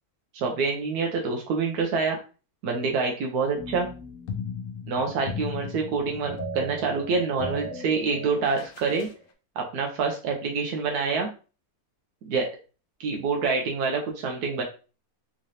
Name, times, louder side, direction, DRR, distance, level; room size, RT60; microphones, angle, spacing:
voice 1, 0.3-2.2 2.6-3.9 4.9-9.1 9.6-11.3 12.3-12.5 13.0-14.6, right 4 dB, 90° right, 1 dB, 1.2 m, -26 dB
sound 1, 3.6-9.2, left 2 dB, 65° left, 1.0 m, -36 dB
3.7 x 3.2 x 2.6 m, 0.35 s
omnidirectional pair, 1.6 m